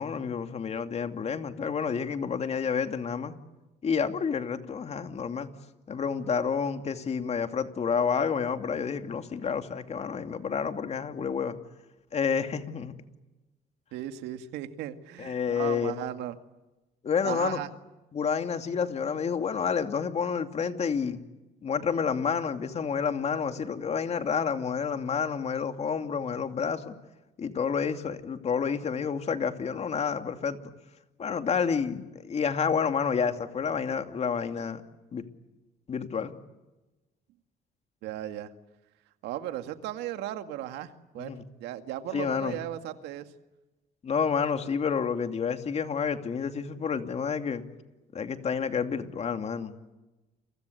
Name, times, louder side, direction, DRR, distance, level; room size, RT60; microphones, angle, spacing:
voice 1, 0.0-3.3 3.8-5.5 5.9-11.6 12.1-12.9 15.2-16.0 17.0-17.6 18.1-21.2 21.6-26.9 27.4-30.6 31.2-34.8 35.1-35.2 35.9-36.3 41.2-41.4 42.1-42.6 44.0-47.6 48.1-49.7, left 6 dB, 40° left, 7 dB, 2.7 m, -29 dB
voice 2, 13.9-16.4 17.2-17.7 38.0-38.5 39.2-43.3, right 12 dB, 90° right, 8 dB, 2.1 m, -36 dB
29.5 x 24.5 x 8.1 m, 1.1 s
cardioid pair, 110°, 17 cm